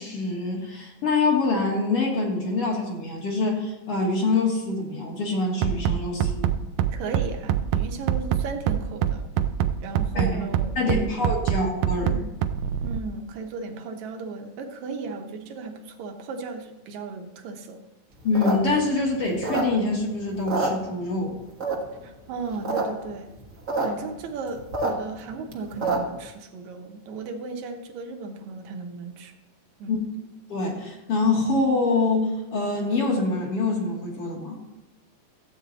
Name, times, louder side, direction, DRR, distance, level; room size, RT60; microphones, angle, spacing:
voice 1, 0.0-6.5 10.1-10.5 10.8-12.2 18.2-21.4 29.9-30.0 30.5-34.6, left 3 dB, 50° left, 0 dB, 2.2 m, -25 dB
Bass drum, 5.6-13.0, right 10 dB, 90° right, 1.6 m, -23 dB
voice 2, 6.9-9.2 9.8-11.4 12.8-17.8 22.0-23.4 23.8-29.3 29.8-30.0, right 4 dB, 65° right, 5 dB, 2.1 m, -36 dB
sound 1, 18.2-20.0 20.3-21.2 21.6-22.0 22.4-22.8 23.1-23.2 23.3-23.9 24.2-26.2, right 3 dB, 45° right, 1.0 m, -27 dB
14.0 x 8.5 x 4.1 m, 1.0 s
omnidirectional pair, 3.9 m